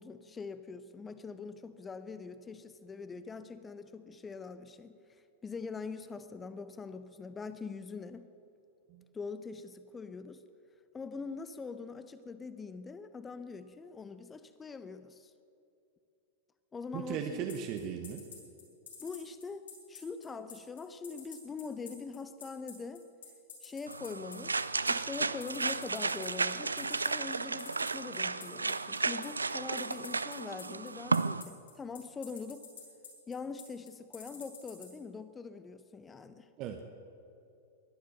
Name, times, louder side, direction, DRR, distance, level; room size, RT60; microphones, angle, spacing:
voice 1, 0.0-5.0 5.4-8.3 9.1-10.4 10.9-15.3 16.7-17.5 19.0-23.1 23.6-24.6 24.9-32.6 33.3-36.5, left 4 dB, 15° left, 12 dB, 0.7 m, -43 dB
voice 2, 16.9-18.2 36.6-36.9, right 8 dB, 40° right, 5 dB, 1.2 m, -37 dB
sound 1, 17.5-34.9, left 7 dB, 70° left, 4.7 m, -48 dB
sound 2, 23.9-31.4, right 4 dB, 85° right, 0.4 m, -33 dB
21.5 x 10.5 x 6.6 m, 2.7 s
figure-of-eight pair, 95°, 0 cm